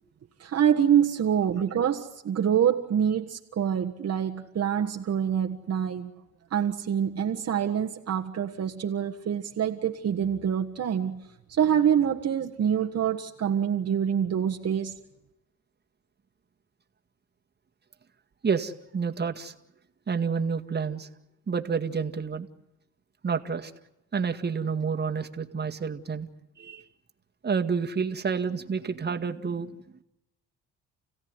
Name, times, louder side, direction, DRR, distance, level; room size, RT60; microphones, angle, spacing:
voice 1, 0.4-6.1 6.5-11.2 11.5-15.0, right 8 dB, 55° right, 2 dB, 1.6 m, -26 dB
voice 2, 18.4-19.5 20.1-21.1 21.5-22.5 23.2-23.7 24.1-26.3 26.6-26.9 27.4-29.7, right 5 dB, 35° right, 5 dB, 2.0 m, -29 dB
30.0 x 16.5 x 9.7 m, 0.88 s
cardioid pair, 90°, 30 cm